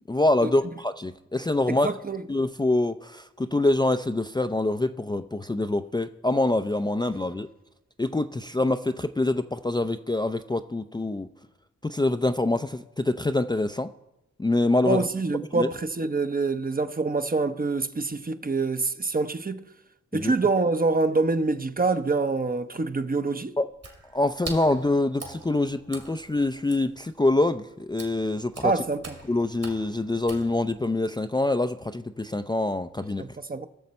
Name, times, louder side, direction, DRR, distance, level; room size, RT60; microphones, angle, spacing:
voice 1, 0.1-1.9 2.3-7.5 8.0-11.3 11.8-13.9 14.4-15.0 15.5-15.7 20.1-20.3 23.6-23.7 24.1-28.7 29.3-33.2, left 2 dB, 15° left, 0.5 m, -25 dB
voice 2, 1.7-2.2 14.8-19.6 20.1-23.5 28.6-29.1 33.2-33.7, right 3 dB, 30° right, 0.8 m, -26 dB
Water / Splash splatter, 23.7-31.0, right 3 dB, 55° right, 2.4 m, -44 dB
19.5 x 6.6 x 4.2 m
cardioid pair, 45°, 31 cm